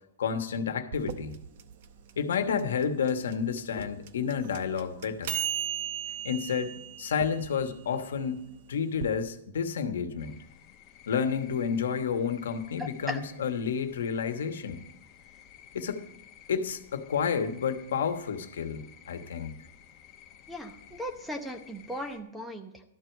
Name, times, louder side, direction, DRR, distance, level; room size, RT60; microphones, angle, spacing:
voice 1, 0.2-1.4 2.2-5.3 6.2-6.7 7.0-8.4 8.7-10.4 11.1-14.8 15.7-16.0 16.5-19.5, left 6 dB, 80° left, 8 dB, 1.1 m, -30 dB
sound 1, 0.9-9.1, right 10 dB, 50° right, 0.7 m, -37 dB
sound 2, 10.2-22.2, left 9 dB, 30° left, 0.9 m, -54 dB
voice 2, 12.8-13.2 20.5-22.8, equal, ahead, 6 dB, 0.8 m, -37 dB
12.5 x 4.6 x 8.0 m, 0.79 s
hypercardioid pair, 160°, 0 cm